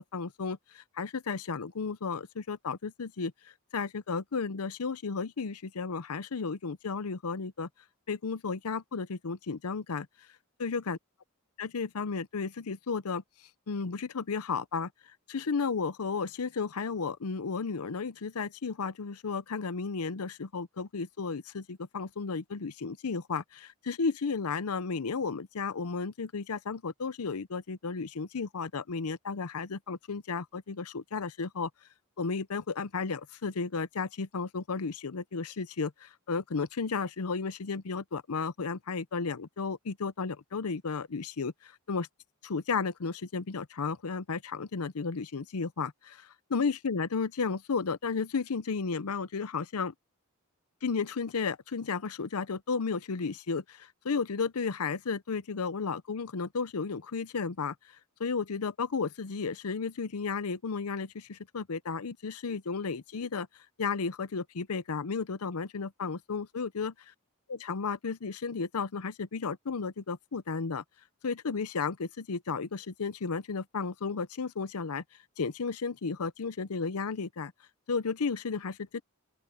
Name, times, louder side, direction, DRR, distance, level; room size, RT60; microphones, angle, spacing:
voice 1, 0.0-3.3 3.7-7.7 8.1-10.1 10.6-11.0 11.6-13.2 13.7-14.9 15.3-31.7 32.2-42.1 42.4-49.9 50.8-57.7 58.2-63.5 63.8-66.9 67.5-70.8 71.2-75.0 75.4-77.5 77.9-79.0, left 5 dB, 80° left, 0.7 m, -33 dB
open air
head